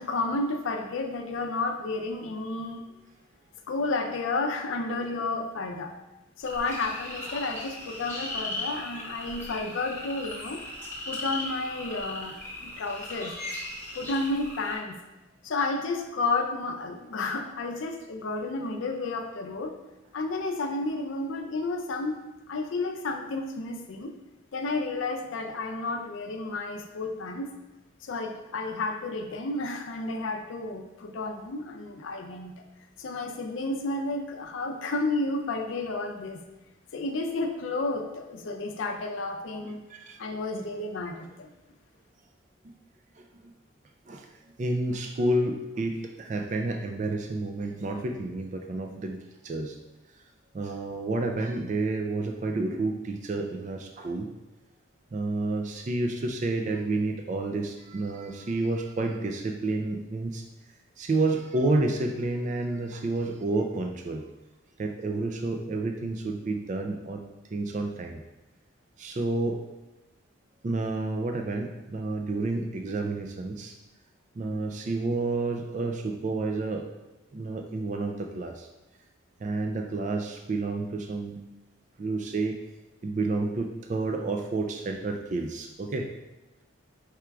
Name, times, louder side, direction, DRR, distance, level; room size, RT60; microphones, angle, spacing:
voice 1, 0.0-2.9 3.7-5.9 6.4-10.6 11.1-13.3 13.9-15.0 15.4-19.7 20.1-22.2 22.5-24.1 24.5-27.5 28.0-32.5 33.0-36.4 36.9-39.8 40.2-41.5, left 3 dB, 75° left, 3 dB, 0.5 m, -31 dB
sound 1, 6.4-14.8, left 1 dB, 10° left, 1.0 m, -38 dB
voice 2, 39.6-40.2 43.2-43.5 44.1-44.3 44.6-49.8 50.5-54.3 55.1-60.4 61.0-64.3 64.8-68.2 69.0-69.6 70.6-73.7 74.4-76.9 77.3-78.7 79.4-81.4 82.0-82.6 83.0-86.1, right 2 dB, 35° right, 4 dB, 0.3 m, -30 dB
4.9 x 4.4 x 2.3 m, 1.0 s
head